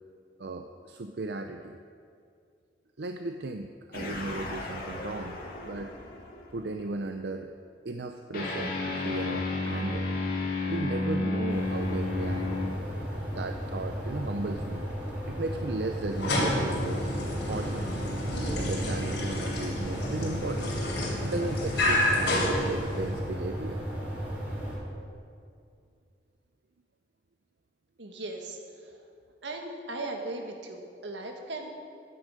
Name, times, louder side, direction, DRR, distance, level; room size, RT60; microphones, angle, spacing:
voice 1, 0.4-1.8 3.0-5.9 6.5-7.5 7.8-8.8 9.0-10.1 10.7-12.7 13.4-14.8 15.3-17.0 17.4-17.9 18.6-20.8 21.2-23.8, right 2 dB, 65° right, 6 dB, 0.5 m, -36 dB
sound 1, 3.9-6.7 8.3-12.7, left 2 dB, 50° left, 2.2 m, -32 dB
sound 2, 11.5-24.7, equal, 10° right, 3.9 m, -35 dB
sound 3, 16.1-23.3, left 1 dB, 70° left, 3.3 m, -30 dB
voice 2, 28.0-29.1 29.4-31.7, right 2 dB, 85° right, 3 dB, 1.7 m, -38 dB
15.0 x 9.9 x 5.2 m, 2.3 s
head